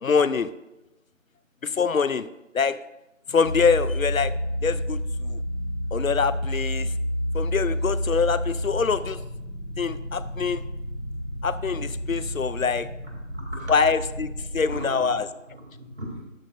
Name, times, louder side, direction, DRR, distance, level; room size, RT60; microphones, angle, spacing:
voice 1, 0.0-0.5 1.6-2.3 2.5-2.8 3.3-4.3 4.6-5.4 5.9-6.9 7.3-9.2 9.8-10.6 11.4-12.9 13.7-15.3, left 5 dB, 90° left, 15 dB, 0.7 m, -24 dB
sound 1, 3.4-14.8, equal, 35° right, 2.0 m, -30 dB
voice 2, 13.3-13.8 14.7-16.2, right 1 dB, 55° right, -3 dB, 3.6 m, -38 dB
13.0 x 8.4 x 2.6 m, 0.95 s
figure-of-eight pair, 180°, 40 cm